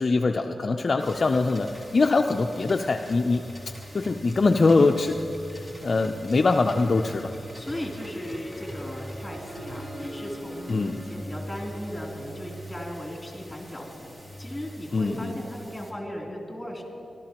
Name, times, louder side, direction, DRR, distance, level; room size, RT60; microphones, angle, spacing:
voice 1, 0.0-3.4 3.9-5.1 5.5-7.3 10.7-11.0 14.9-15.3, left 3 dB, 50° left, 4 dB, 0.5 m, -23 dB
sound 1, 1.0-15.9, equal, 25° right, 2.0 m, -47 dB
sound 2, 3.4-15.5, right 1 dB, 30° left, 1.2 m, -44 dB
voice 2, 7.5-16.8, left 1 dB, 10° left, -2 dB, 3.1 m, -37 dB
Harp, 7.5-12.9, equal, 70° right, 2.4 m, -43 dB
24.0 x 13.0 x 3.0 m, 2.8 s
wide cardioid pair, 95°, 0 cm